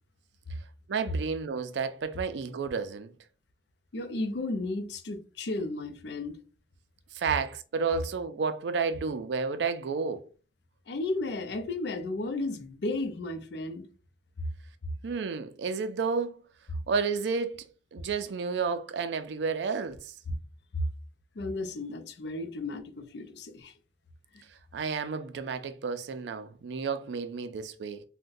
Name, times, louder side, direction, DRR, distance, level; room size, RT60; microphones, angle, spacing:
voice 1, 0.9-3.1 7.1-10.2 15.0-16.4 16.9-20.1 24.7-28.0, right 5 dB, 75° right, 0.4 m, -31 dB
voice 2, 3.9-6.4 10.9-13.8 20.3-20.4 20.7-20.8 21.4-23.7 24.3-24.4, left 2 dB, 70° left, 0.5 m, -34 dB
2.6 x 2.1 x 3.8 m
head